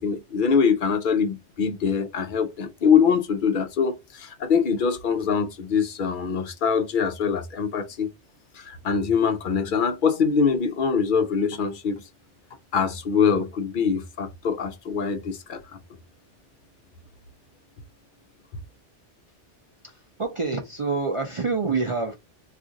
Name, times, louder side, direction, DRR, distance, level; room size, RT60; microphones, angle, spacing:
voice 1, 0.0-8.1 8.5-12.0 12.7-15.8, left 6 dB, 55° left, 0.6 m, -23 dB
voice 2, 19.8-22.1, right 4 dB, 50° right, 0.3 m, -27 dB
2.4 x 2.4 x 3.8 m
omnidirectional pair, 1.2 m